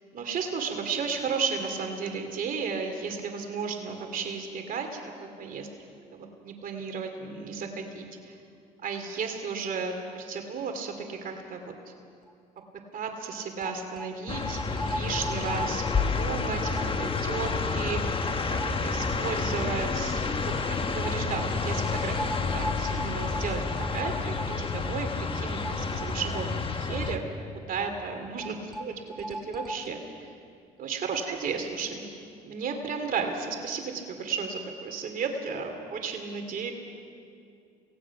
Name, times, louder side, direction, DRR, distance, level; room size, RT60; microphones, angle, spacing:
voice 1, 0.1-5.7 6.1-8.4 8.8-11.7 12.9-20.5 20.9-23.6 23.9-27.2 27.5-30.3 30.8-32.1 32.4-36.7, right 5 dB, 55° right, 5 dB, 2.7 m, -34 dB
sound 1, 12.3-12.4 12.6-12.7 13.6-19.4 19.6-19.7 21.0-27.1 27.4-27.5 28.4-29.9, right 1 dB, ahead, 1.9 m, -39 dB
sound 2, 14.3-27.2, left 4 dB, 30° left, 1.5 m, -29 dB
26.0 x 18.5 x 5.9 m, 2.5 s
supercardioid pair, 80°, 17 cm